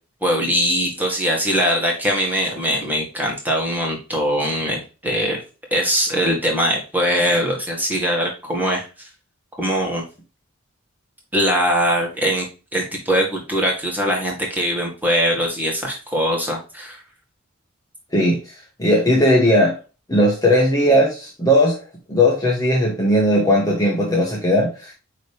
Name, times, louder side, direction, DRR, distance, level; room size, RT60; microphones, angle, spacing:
voice 1, 0.2-5.4 5.7-8.9 9.6-10.0 11.3-12.5 12.7-17.0, equal, 10° right, 1.9 m, -21 dB
voice 2, 18.8-19.8 20.1-21.8 22.1-24.9, equal, 15° left, 1.4 m, -17 dB
9.0 x 3.3 x 3.5 m
head